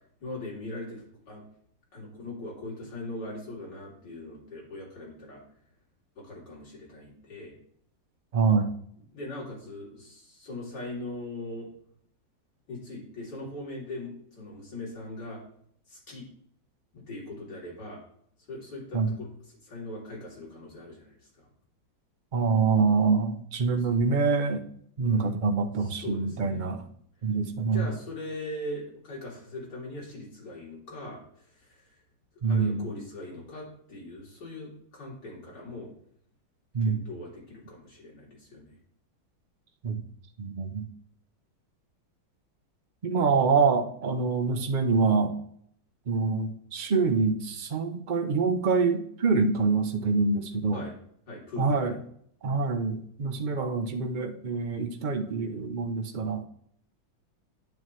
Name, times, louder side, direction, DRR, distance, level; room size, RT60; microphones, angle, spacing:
voice 1, 0.2-1.4 1.9-5.4 6.2-7.6 9.1-11.7 12.7-15.4 15.9-16.3 16.9-18.0 18.5-19.3 19.6-21.5 23.7-23.8 25.0-25.3 25.9-26.6 27.7-31.2 31.6-31.8 32.5-35.9 36.8-38.7 50.7-50.9 51.3-51.9, left 1 dB, 60° left, -5 dB, 3.8 m, -40 dB
voice 2, 8.3-8.7 18.9-19.1 22.3-24.6 25.0-26.8 27.2-27.9 32.4-32.9 36.7-37.0 39.8-40.0 40.4-40.9 43.0-45.3 46.1-50.8 51.6-51.9 52.4-56.4, right 4 dB, 65° right, 5 dB, 0.4 m, -25 dB
9.3 x 8.7 x 3.1 m, 0.66 s
omnidirectional pair, 2.0 m